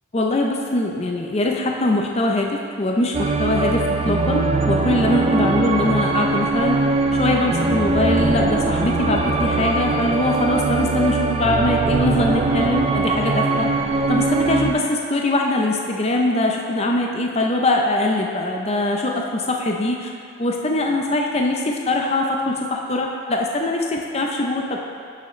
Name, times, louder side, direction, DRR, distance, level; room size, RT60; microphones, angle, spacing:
voice 1, 0.1-6.8 7.1-13.7 14.1-20.1 20.4-24.8, left 1 dB, 30° left, 1 dB, 0.5 m, -22 dB
sound 1, 3.1-14.7, right 3 dB, 30° right, 0.4 m, -21 dB
10.5 x 5.7 x 3.1 m, 2.4 s
head